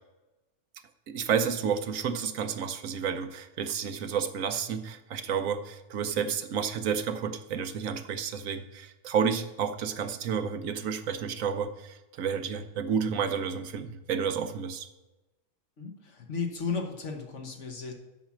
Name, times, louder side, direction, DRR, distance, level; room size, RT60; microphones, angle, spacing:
voice 1, 1.1-14.9, right 7 dB, 80° right, 9 dB, 1.2 m, -31 dB
voice 2, 15.8-17.9, left 5 dB, 60° left, 3 dB, 1.6 m, -34 dB
8.0 x 6.2 x 7.2 m, 1.0 s
omnidirectional pair, 1.4 m